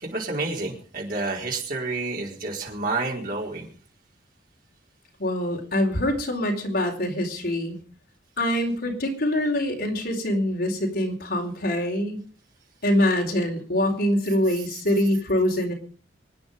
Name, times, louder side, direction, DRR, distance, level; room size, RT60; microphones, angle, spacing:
voice 1, 0.0-3.7, right 3 dB, 50° right, -1 dB, 4.6 m, -29 dB
voice 2, 5.2-7.8 8.4-12.2 12.8-15.7, left 1 dB, 60° left, 1 dB, 4.4 m, -24 dB
24.5 x 9.7 x 5.4 m, 0.41 s
head